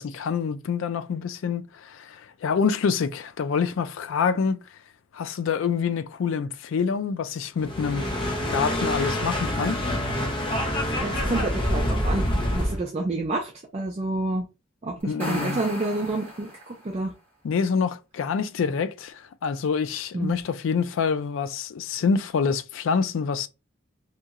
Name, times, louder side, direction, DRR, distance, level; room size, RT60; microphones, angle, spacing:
voice 1, 0.0-4.6 5.1-8.1 8.5-9.8 15.0-15.6 17.4-23.5, left 6 dB, 70° left, 0.3 m, -26 dB
sound 1, 7.6-12.8, equal, 25° left, 0.6 m, -26 dB
voice 2, 10.7-14.5 14.8-17.1 20.1-20.4, right 2 dB, 30° right, 0.4 m, -29 dB
sound 2, 15.0-17.0, equal, 10° left, 1.5 m, -37 dB
2.9 x 2.7 x 2.4 m
head